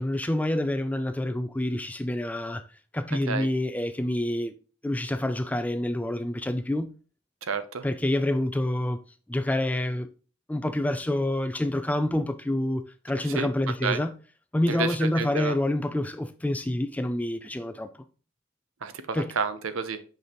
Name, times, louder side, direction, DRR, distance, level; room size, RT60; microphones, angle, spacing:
voice 1, 0.0-2.6 2.9-4.5 4.8-6.9 7.8-9.0 9.3-10.1 10.5-14.2 14.5-17.9 19.1-19.3, left 1 dB, 5° left, 0.3 m, -27 dB
voice 2, 7.5-7.9 13.3-14.0 14.7-15.6 18.8-20.0, right 5 dB, 80° right, 0.7 m, -30 dB
6.3 x 5.3 x 3.0 m
head